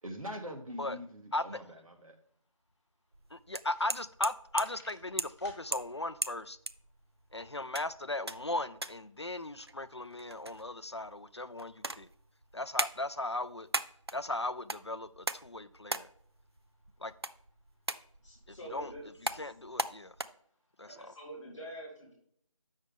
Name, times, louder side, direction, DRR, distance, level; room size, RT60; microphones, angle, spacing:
voice 1, 0.0-2.2, equal, 75° right, 1.8 m, -43 dB
sound 1, 2.3-2.4 2.7-2.8 3.3-3.4 3.6-4.3 4.6-5.6, left 1 dB, 30° left, 1.8 m, -55 dB
sound 2, 3.1-20.2, right 2 dB, 50° right, 0.4 m, -41 dB
voice 2, 3.3-6.6 7.3-12.1 12.5-13.7 14.1-16.1 17.0-17.1 18.5-18.9 19.4-20.1 20.8-21.1, left 2 dB, 50° left, 0.4 m, -37 dB
voice 3, 18.2-19.8 20.8-22.1, right 1 dB, 5° left, 1.6 m, -47 dB
7.5 x 6.4 x 3.5 m
figure-of-eight pair, 175°, 18 cm